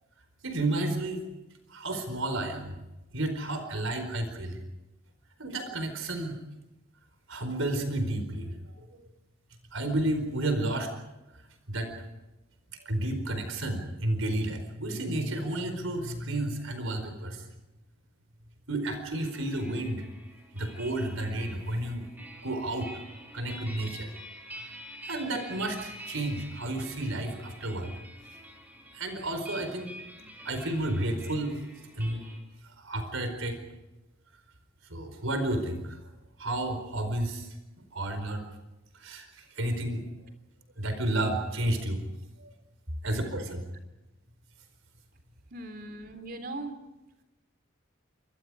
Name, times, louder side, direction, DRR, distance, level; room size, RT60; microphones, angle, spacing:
voice 1, 0.4-1.2 1.7-2.8 3.1-4.6 5.4-6.4 7.3-9.0 9.7-10.9 11.7-11.9 12.7-17.5 18.7-20.1 20.5-22.0 22.4-22.9 23.3-24.1 25.0-27.9 28.2-28.4 28.9-29.9 30.4-31.6 32.0-32.2 32.6-33.6 34.9-36.0 36.4-37.5 37.9-38.4 38.9-40.0 40.8-42.0 42.4-42.5 43.0-43.6, right 1 dB, 85° right, 7 dB, 4.6 m, -31 dB
sound 1, 19.1-32.4, equal, 10° right, 4.8 m, -47 dB
voice 2, 45.5-46.8, right 2 dB, 50° right, 8 dB, 3.6 m, -39 dB
28.5 x 25.5 x 5.0 m, 1.0 s
head